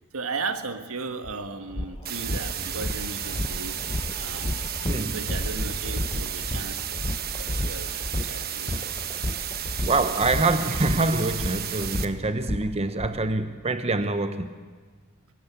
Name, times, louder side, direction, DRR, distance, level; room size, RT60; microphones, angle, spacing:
voice 1, 0.1-3.8 4.2-4.6 5.1-8.9, right 4 dB, 80° right, 1.5 m, -36 dB
beatboxing reverb shit, 1.2-1.3 1.7-13.1, left 1 dB, 25° left, 0.8 m, -32 dB
sound 1, 2.1-12.1, right 10 dB, 45° right, 1.1 m, -33 dB
voice 2, 4.9-5.2 9.9-14.5, right 2 dB, 30° right, 0.8 m, -25 dB
23.5 x 17.0 x 8.2 m
head